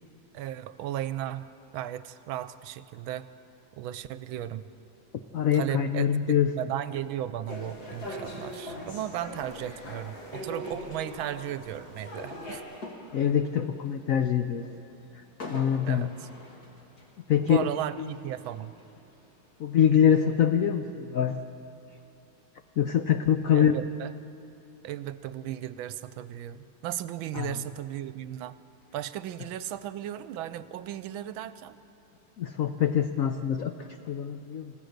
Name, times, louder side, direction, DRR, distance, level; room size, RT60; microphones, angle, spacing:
voice 1, 0.3-3.3 3.7-4.7 5.5-12.6 15.9-16.3 17.4-18.7 23.5-24.1 24.8-28.5 28.9-31.8, right 12 dB, 80° right, 14 dB, 1.4 m, -35 dB
voice 2, 5.3-6.5 13.1-14.7 15.1-15.2 15.5-16.1 17.3-17.7 18.0-18.1 19.6-21.4 22.8-23.8 27.3-27.5 32.4-34.7, left 9 dB, 80° left, 8 dB, 0.7 m, -24 dB
sound 1, 7.5-12.6, equal, 65° left, 3.8 m, -40 dB
sound 2, 7.5-20.4, left 1 dB, 45° left, 3.1 m, -50 dB
28.0 x 15.5 x 6.6 m, 2.7 s
omnidirectional pair, 2.3 m